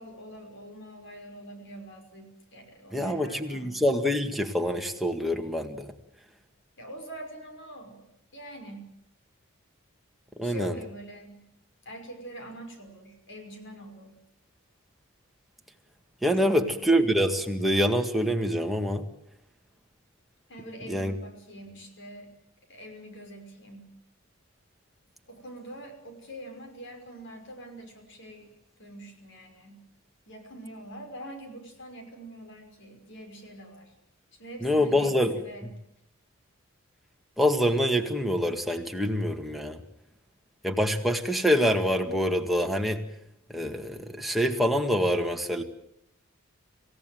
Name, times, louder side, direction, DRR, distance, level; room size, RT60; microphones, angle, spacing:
voice 1, 0.0-3.8 6.8-8.9 10.4-11.4 11.8-14.2 16.4-16.8 20.5-22.3 22.7-23.9 25.3-28.5 28.8-29.8 30.3-33.9 34.3-35.7, right 1 dB, 60° left, 5 dB, 5.6 m, -44 dB
voice 2, 2.9-5.9 10.4-10.7 16.2-19.1 20.9-21.2 34.6-35.5 37.4-39.8 40.6-43.0 43.5-45.6, equal, ahead, 3 dB, 1.8 m, -25 dB
26.5 x 16.5 x 9.2 m, 0.81 s
head